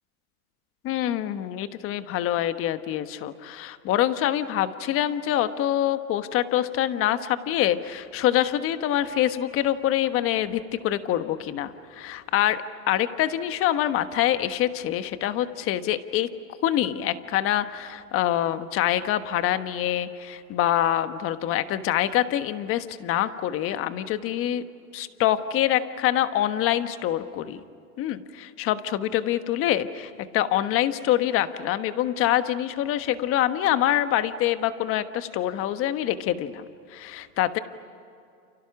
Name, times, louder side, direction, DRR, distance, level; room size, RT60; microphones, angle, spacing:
voice 1, 0.8-16.3 16.6-24.6 24.9-27.6 28.0-37.6, left 12 dB, 30° left, 11 dB, 1.3 m, -25 dB
30.0 x 29.0 x 6.0 m, 2.6 s
hypercardioid pair, 135°, 44 cm